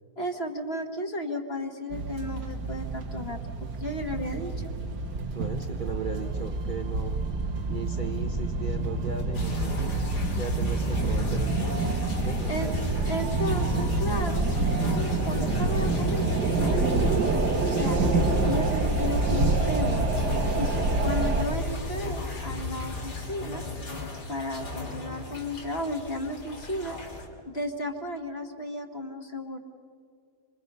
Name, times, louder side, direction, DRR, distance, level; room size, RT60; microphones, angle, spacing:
voice 1, 0.2-3.4 3.8-4.7 12.5-14.4 14.8-18.0 18.4-20.1 20.5-23.6 24.3-27.0 27.5-29.6, left 1 dB, 40° left, 4 dB, 1.7 m, -34 dB
sound 1, 1.9-21.4, right 3 dB, 80° right, 2.1 m, -27 dB
voice 2, 5.2-7.2 7.7-9.8 10.3-11.8 12.2-12.5, right 4 dB, 35° right, 3 dB, 0.9 m, -36 dB
sound 2, 9.3-27.3, left 2 dB, 80° left, 3.4 m, -34 dB
27.0 x 25.5 x 5.5 m, 2.2 s
omnidirectional pair, 1.7 m